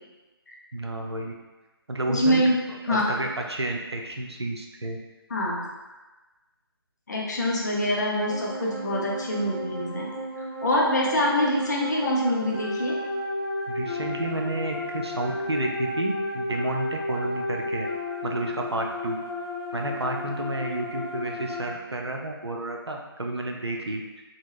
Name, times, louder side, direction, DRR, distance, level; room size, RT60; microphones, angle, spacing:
voice 1, 0.7-1.4 1.9-2.4 2.9-5.0 13.7-17.9 18.2-19.2 19.7-24.0, right 2 dB, 85° right, 1 dB, 0.5 m, -31 dB
voice 2, 2.1-2.6 2.9-3.0 5.3-5.6 7.1-10.1 10.6-13.0, equal, 45° left, -3 dB, 0.6 m, -25 dB
sound 1, 8.3-21.7, left 1 dB, 15° right, 0.6 m, -33 dB
2.8 x 2.4 x 3.0 m, 1.2 s
figure-of-eight pair, 150°, 13 cm